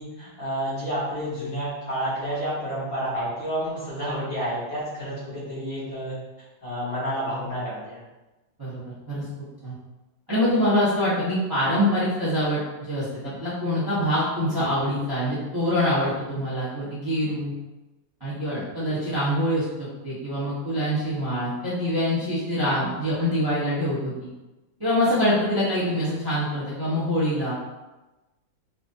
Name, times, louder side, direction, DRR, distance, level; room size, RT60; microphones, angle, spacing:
voice 1, 0.0-6.1 6.6-8.0, equal, 50° left, -9 dB, 1.7 m, -30 dB
voice 2, 10.3-12.6 12.9-17.5 18.2-24.3 24.8-27.5, equal, 25° right, -11 dB, 0.5 m, -25 dB
4.2 x 2.6 x 2.6 m, 1.1 s
omnidirectional pair, 2.1 m